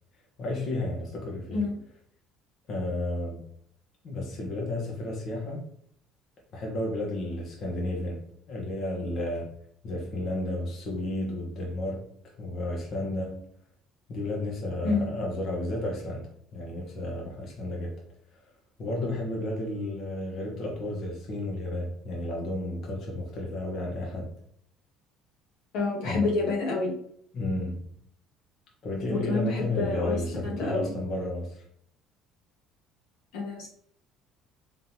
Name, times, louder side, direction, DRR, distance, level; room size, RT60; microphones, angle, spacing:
voice 1, 0.4-1.6 2.7-3.4 4.0-5.6 6.5-8.2 8.5-9.5 9.8-13.4 14.1-17.9 18.4-18.5 18.8-24.3 26.0-26.4 27.3-27.8 28.8-31.6, left 1 dB, 50° left, -1 dB, 1.3 m, -32 dB
voice 2, 25.7-26.9 29.1-30.9 33.3-33.7, left 3 dB, 75° left, -2 dB, 1.3 m, -28 dB
3.7 x 3.7 x 2.9 m, 0.68 s
cardioid pair, 100°, 0 cm